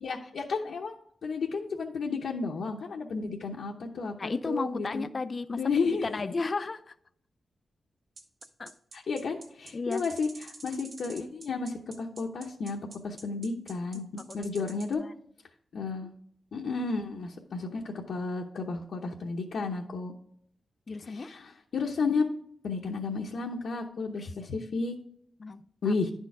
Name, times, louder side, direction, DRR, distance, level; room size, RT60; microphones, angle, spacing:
voice 1, 0.0-1.0 1.2-5.1 5.6-6.2 8.9-15.0 15.7-16.1 16.5-20.1 21.1-22.3 22.6-24.9 25.8-26.1, left 4 dB, 75° left, 0.8 m, -32 dB
voice 2, 4.2-5.6 6.0-6.9 8.6-8.7 9.7-10.0 13.9-14.5 15.8-15.9 20.9-21.4 24.2-24.3 25.4-25.9, left 3 dB, 40° left, 0.4 m, -34 dB
sound 1, 8.2-14.9, right 2 dB, 45° right, 1.4 m, -48 dB
11.0 x 4.5 x 4.6 m
wide cardioid pair, 120°, 0 cm